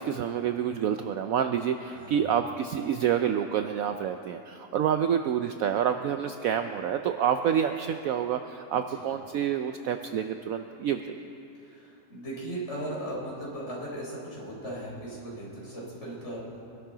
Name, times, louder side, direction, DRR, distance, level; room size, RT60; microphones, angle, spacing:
voice 1, 0.0-11.2, right 8 dB, 70° right, 7 dB, 0.8 m, -28 dB
voice 2, 1.9-2.3 8.7-9.0 11.6-16.6, right 1 dB, 40° left, -5 dB, 4.1 m, -38 dB
24.0 x 12.0 x 3.9 m, 2.8 s
omnidirectional pair, 1.8 m